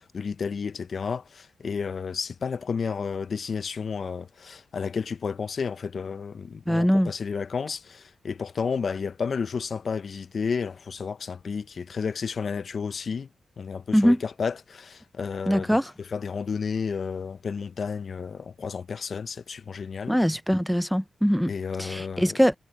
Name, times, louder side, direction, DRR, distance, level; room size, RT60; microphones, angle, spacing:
voice 1, 0.0-13.3 13.6-20.1 21.5-22.4, left 5 dB, 60° left, 0.5 m, -32 dB
voice 2, 6.7-7.1 13.9-14.2 15.5-15.8 20.1-21.5 21.8-22.5, equal, ahead, 0.5 m, -22 dB
cardioid pair, 70°, 0 cm